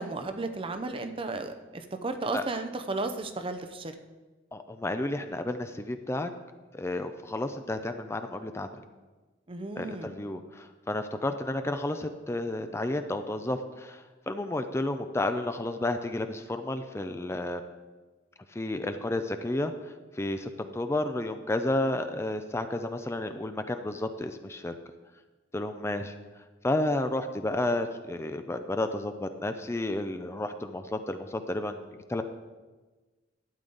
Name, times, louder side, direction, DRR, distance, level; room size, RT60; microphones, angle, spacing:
voice 1, 0.0-3.9 9.5-10.1, right 3 dB, 30° right, 8 dB, 0.6 m, -34 dB
voice 2, 4.5-6.3 6.7-8.7 9.8-17.6 18.5-24.8 25.5-26.1 26.6-32.2, left 1 dB, 15° left, 8 dB, 0.4 m, -31 dB
12.0 x 9.1 x 3.9 m, 1.3 s
head